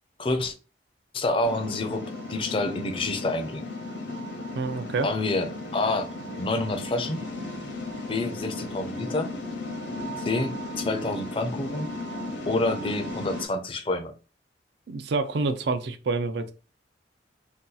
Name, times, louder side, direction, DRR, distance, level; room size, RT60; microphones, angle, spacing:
voice 1, 0.2-0.5 1.1-3.7 5.0-6.1 6.4-7.2 8.1-9.3 10.2-11.9 12.5-14.1, left 2 dB, 30° left, 0.4 m, -28 dB
sound 1, 1.4-13.5, left 2 dB, 70° left, 0.8 m, -35 dB
voice 2, 4.6-5.1 14.9-16.5, right 3 dB, 65° right, 0.4 m, -27 dB
2.7 x 2.3 x 3.8 m
head